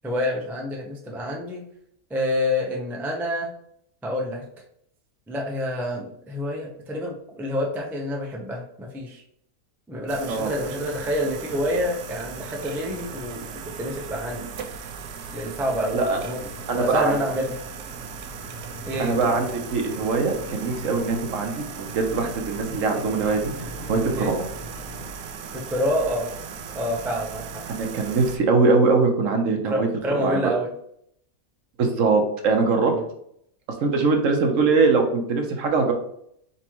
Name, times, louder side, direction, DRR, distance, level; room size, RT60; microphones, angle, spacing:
voice 1, 0.0-1.6 2.1-3.5 4.0-4.4 5.3-9.2 9.9-14.5 15.3-16.0 16.2-16.4 16.7-17.6 18.9-19.2 24.1-24.3 25.5-26.3 26.7-27.6 29.6-30.7 32.9-33.0, equal, 5° right, -1 dB, 0.3 m, -27 dB
sound 1, 10.1-28.4, right 6 dB, 85° right, 1.1 m, -37 dB
sound 2, 15.7-25.1, left 1 dB, 60° left, 1.4 m, -41 dB
voice 2, 16.7-17.1 19.0-24.5 27.7-29.9 30.2-30.5 31.8-32.9 33.8-35.9, right 4 dB, 65° right, 4 dB, 1.1 m, -22 dB
4.3 x 4.1 x 3.0 m, 0.71 s
omnidirectional pair, 1.6 m